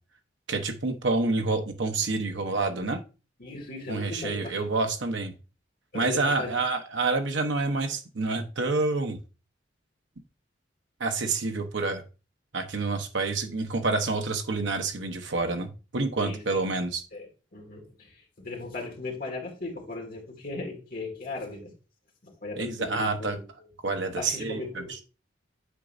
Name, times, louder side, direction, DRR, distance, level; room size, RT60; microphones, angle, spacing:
voice 1, 0.5-3.0 3.9-5.3 5.9-9.2 11.0-12.0 12.5-17.0 22.6-23.4 23.8-25.0, right 3 dB, 80° right, 5 dB, 0.9 m, -28 dB
voice 2, 3.4-4.6 5.9-6.7 16.2-16.7 17.1-21.7 22.2-23.7 24.1-25.0, left 3 dB, 50° left, 0 dB, 2.1 m, -38 dB
8.2 x 5.1 x 2.6 m, 0.33 s
head